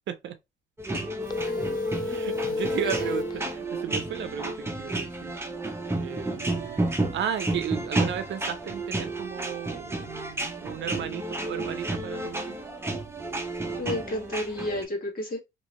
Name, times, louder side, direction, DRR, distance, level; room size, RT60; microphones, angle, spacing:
sound 1, 0.8-14.8, right 2 dB, 10° right, 0.7 m, -32 dB
sound 2, 1.3-3.4, left 2 dB, 20° left, 0.4 m, -30 dB
voice 1, 2.0-5.3 6.0-6.9 7.1-12.4, right 9 dB, 65° right, 0.6 m, -34 dB
voice 2, 13.8-15.4, left 1 dB, 45° left, 1.7 m, -31 dB
3.0 x 2.7 x 3.0 m
cardioid pair, 90°, 20 cm